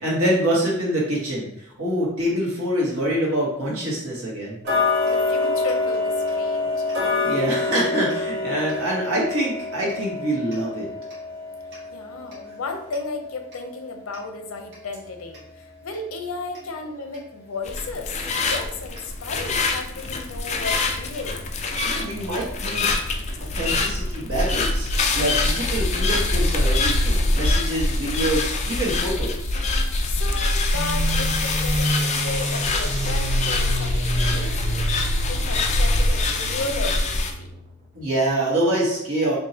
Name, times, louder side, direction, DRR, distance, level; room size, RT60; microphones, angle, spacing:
voice 1, 0.0-1.5 1.8-4.6 7.2-10.9 21.8-22.9 23.5-29.6 37.9-39.4, right 1 dB, 80° right, -4 dB, 1.4 m, -25 dB
Tick-tock, 4.6-15.5 15.9-16.0 16.5-16.6 17.1-17.2 17.8-17.9 18.3-18.4 19.0-19.1 19.6-19.7, left 3 dB, 55° right, 1.1 m, -27 dB
voice 2, 5.1-6.8 11.9-21.4 30.0-34.9 35.3-37.5, left 3 dB, 85° left, 4 dB, 0.6 m, -34 dB
sound 1, 17.6-37.3, left 2 dB, 35° left, 0.4 m, -24 dB
sound 2, 30.7-38.0, right 1 dB, 35° right, 0.6 m, -30 dB
4.5 x 2.7 x 2.8 m, 0.76 s
head